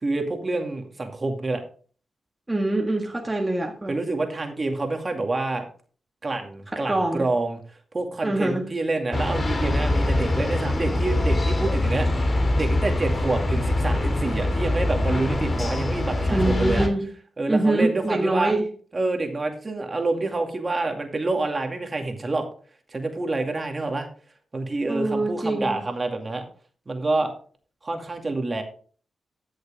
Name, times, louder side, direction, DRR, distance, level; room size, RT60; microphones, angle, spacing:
voice 1, 0.0-1.6 3.9-5.6 6.2-7.6 7.9-12.1 12.5-16.9 17.4-18.5 18.9-22.4 22.9-24.1 24.5-26.4 26.9-27.3 27.8-28.6, right 2 dB, 35° right, 4 dB, 2.3 m, -27 dB
voice 2, 2.5-3.9 6.7-7.2 8.2-8.6 16.3-17.0 17.5-18.7 24.9-25.8, right 2 dB, 20° right, 0 dB, 1.7 m, -24 dB
sound 1, 9.1-16.9, left 1 dB, 40° left, 2.5 m, -23 dB
14.0 x 6.5 x 3.5 m, 0.42 s
cardioid pair, 60°, 0 cm